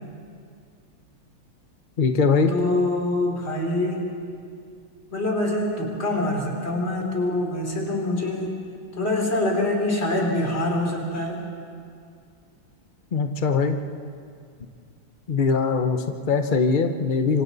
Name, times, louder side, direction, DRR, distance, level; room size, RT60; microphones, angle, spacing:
voice 1, 2.0-2.5 13.1-13.8 15.3-17.4, left 4 dB, 85° left, 6 dB, 0.4 m, -21 dB
voice 2, 2.5-4.1 5.1-8.5 9.0-11.4, left 1 dB, 30° left, 0 dB, 3.4 m, -25 dB
26.5 x 25.5 x 4.1 m, 2.3 s
omnidirectional pair, 2.3 m